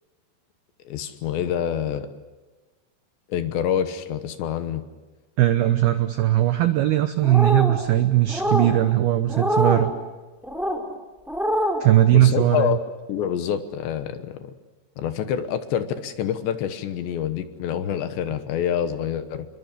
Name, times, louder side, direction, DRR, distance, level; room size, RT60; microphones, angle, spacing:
voice 1, 0.9-2.1 3.3-4.8 12.1-12.8 13.1-14.5 15.0-19.5, left 9 dB, 70° left, 9 dB, 3.1 m, -26 dB
voice 2, 5.4-9.9 11.8-12.8, right 13 dB, 85° right, 10 dB, 2.2 m, -19 dB
sound 1, 7.2-7.8 8.3-8.7 9.3-9.8 10.4-10.8 11.3-11.8, equal, ahead, 3.2 m, -24 dB
27.5 x 22.5 x 8.3 m, 1.2 s
omnidirectional pair, 5.7 m